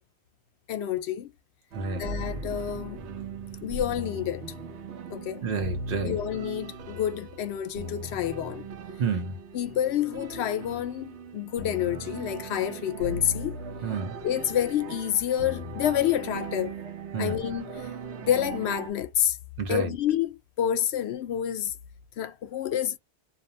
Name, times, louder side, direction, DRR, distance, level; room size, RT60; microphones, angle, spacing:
voice 1, 0.7-1.3 2.0-3.0 3.6-4.4 5.1-5.5 6.0-8.6 9.5-13.6 14.2-16.7 17.2-17.9 18.2-19.4 19.7-21.7 22.2-23.0, left 10 dB, 75° left, 0.8 m, -28 dB
voice 2, 1.7-2.1 5.4-6.2 9.0-9.4 13.8-14.2 17.1-17.4 19.6-19.9, right 5 dB, 60° right, 0.8 m, -29 dB
sound 1, 1.7-18.9, right 2 dB, 80° right, 0.9 m, -38 dB
2.5 x 2.1 x 2.5 m
omnidirectional pair, 1.1 m